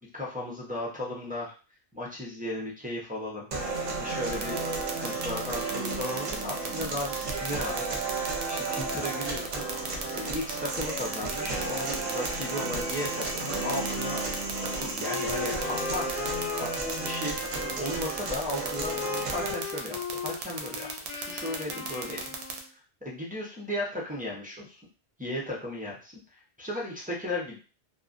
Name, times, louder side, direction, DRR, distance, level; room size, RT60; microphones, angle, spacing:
voice 1, 0.1-1.6 1.9-14.3 14.7-22.3 22.7-24.8 25.2-27.6, left 1 dB, 15° right, -6 dB, 0.4 m, -36 dB
sound 1, 3.5-19.5, right 3 dB, 50° right, 0.7 m, -33 dB
sound 2, 4.3-22.6, right 7 dB, 80° right, 0.8 m, -35 dB
Wind instrument woodwind instrument, 13.4-18.1 18.7-22.7, left 6 dB, 50° left, 0.6 m, -38 dB
2.5 x 2.1 x 2.4 m, 0.35 s
omnidirectional pair, 1.1 m